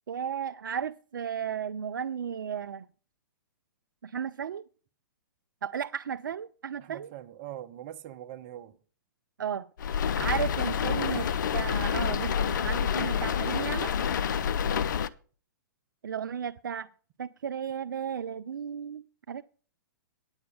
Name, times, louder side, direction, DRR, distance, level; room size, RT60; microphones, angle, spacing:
voice 1, 0.1-2.9 4.0-4.6 5.6-7.1 9.4-9.7 10.2-13.9 16.0-16.9 17.2-19.4, right 8 dB, 75° right, 0.4 m, -34 dB
voice 2, 6.8-8.8 10.8-11.1 14.6-14.9, right 12 dB, 40° right, 0.9 m, -43 dB
sound 1, 9.8-15.1, left 8 dB, 65° left, 0.6 m, -28 dB
9.6 x 8.0 x 5.3 m
figure-of-eight pair, 115°, 11 cm